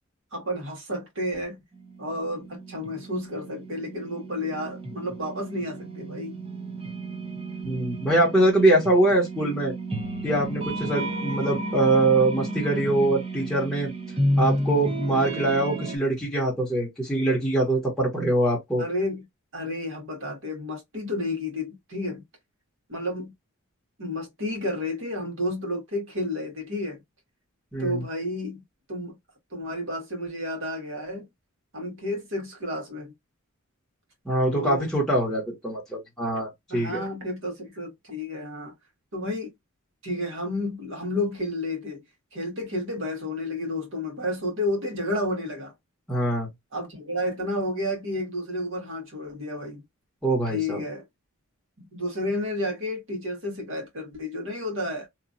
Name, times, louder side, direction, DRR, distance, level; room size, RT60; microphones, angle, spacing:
voice 1, 0.3-1.6 2.0-6.3 10.8-11.2 18.8-19.3 19.5-22.2 22.9-23.3 24.0-27.0 27.8-28.6 28.9-29.2 29.5-31.3 31.7-33.1 34.5-34.9 36.7-38.7 39.1-39.5 40.0-42.0 42.3-45.7 46.7-49.8 50.5-51.0 51.9-55.1, left 1 dB, 60° right, 1.5 m, -31 dB
sound 1, 1.7-16.0, right 1 dB, 25° right, 0.6 m, -32 dB
voice 2, 7.6-9.7 10.2-13.9 14.4-18.8 27.7-28.0 34.2-37.0 46.1-46.5 50.2-50.8, right 2 dB, 5° left, 1.1 m, -23 dB
3.0 x 2.4 x 2.6 m
head